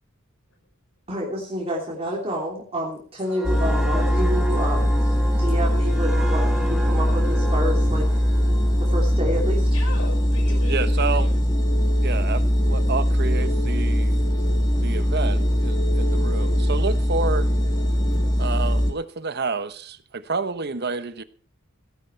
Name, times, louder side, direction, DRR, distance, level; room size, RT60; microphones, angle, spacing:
voice 1, 1.1-4.9 5.3-8.2 8.8-9.8, equal, 30° right, 3.2 m, -29 dB
sound 1, 3.3-10.7 11.1-11.4, right 1 dB, ahead, 1.9 m, -35 dB
sound 2, 3.4-18.9, equal, 20° left, 2.3 m, -21 dB
voice 2, 9.7-11.5 11.8-11.9, left 3 dB, 75° left, 5.3 m, -38 dB
voice 3, 10.7-11.3 12.0-14.2 14.7-17.5 18.4-21.2, right 4 dB, 50° right, 1.1 m, -29 dB
17.0 x 11.0 x 4.6 m
head